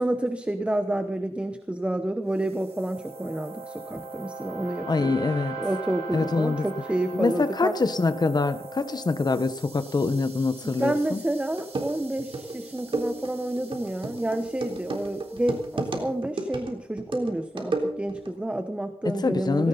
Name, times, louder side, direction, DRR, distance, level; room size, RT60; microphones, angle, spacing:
voice 1, 0.0-5.2 5.6-7.7 10.6-19.7, right 1 dB, 10° right, 8 dB, 1.0 m, -29 dB
sound 1, 2.4-15.8, right 4 dB, 90° right, 4.0 m, -41 dB
voice 2, 4.9-5.6 6.1-6.7 7.1-11.2 19.0-19.7, left 3 dB, 40° left, 10 dB, 1.3 m, -25 dB
sound 2, 11.2-11.3 11.6-18.3, right 2 dB, 55° right, 3.5 m, -32 dB
18.5 x 17.5 x 4.1 m, 0.65 s
wide cardioid pair, 140°, 11 cm